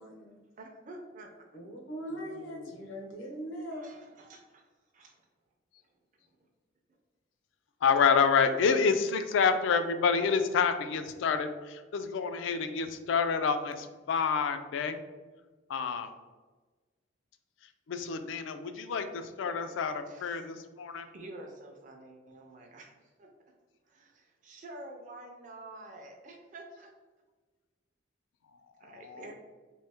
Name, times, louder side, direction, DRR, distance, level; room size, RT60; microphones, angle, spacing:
voice 1, 0.0-0.4 1.5-3.9, equal, 90° left, 0 dB, 0.8 m, -41 dB
voice 2, 0.6-1.3 3.7-4.6 4.9-5.2 20.1-22.9 23.2-23.3 23.9-26.9 28.8-29.3, right 2 dB, 40° right, 1 dB, 0.4 m, -49 dB
voice 3, 2.1-2.7 7.8-15.0 15.7-16.1 17.9-21.0 28.9-29.3, left 5 dB, 75° left, 9 dB, 0.3 m, -28 dB
3.0 x 2.7 x 3.4 m, 1.3 s
head